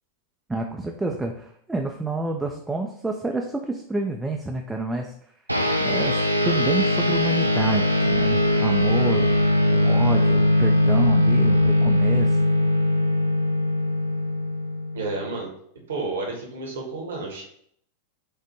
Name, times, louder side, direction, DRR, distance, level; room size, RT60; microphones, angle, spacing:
voice 1, 0.5-5.1 5.8-9.3 9.7-12.4, right 2 dB, 10° right, 1 dB, 0.3 m, -28 dB
sound 1, 5.5-15.2, left 1 dB, 85° right, 0.4 m, -20 dB
voice 2, 14.9-15.5 15.9-17.4, right 3 dB, 65° right, 1 dB, 1.0 m, -31 dB
4.8 x 2.1 x 2.9 m, 0.66 s
figure-of-eight pair, 90°, 0 cm